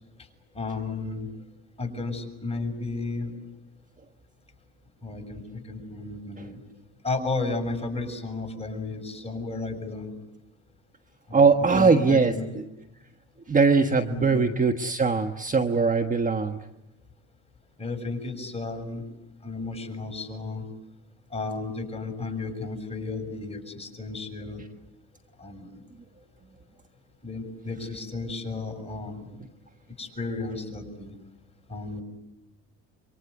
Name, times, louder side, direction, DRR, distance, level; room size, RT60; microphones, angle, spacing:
voice 1, 0.5-1.3 1.8-3.3 5.0-6.6 7.0-10.1 11.3-12.5 14.1-14.5 17.8-19.0 19.4-20.6 21.3-24.6 25.4-25.8 27.2-29.4 30.0-31.1 31.7-32.0, left 3 dB, 20° left, 4 dB, 7.0 m, -33 dB
voice 2, 11.3-12.3 13.5-16.6, right 4 dB, 25° right, 7 dB, 1.3 m, -21 dB
27.0 x 24.5 x 8.1 m, 0.94 s
supercardioid pair, 90°, 32 cm